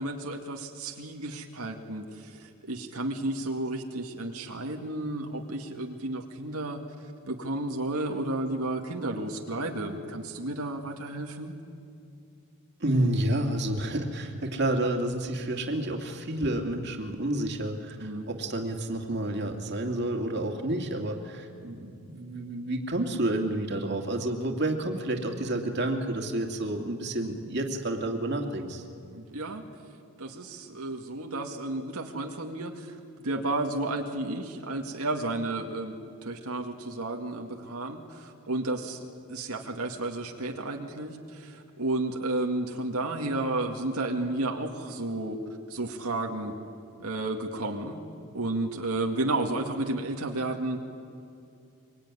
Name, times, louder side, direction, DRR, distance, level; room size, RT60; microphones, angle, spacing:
voice 1, 0.0-6.8 7.3-11.5 18.0-18.3 29.1-29.6 30.2-32.9 33.2-36.0 36.2-39.0 39.3-45.4 45.7-46.5 47.0-48.0 48.3-50.8, right 2 dB, 85° right, 2 dB, 2.1 m, -32 dB
voice 2, 12.8-28.8, right 1 dB, 50° right, 2 dB, 2.4 m, -30 dB
24.5 x 24.0 x 9.8 m, 2.5 s
head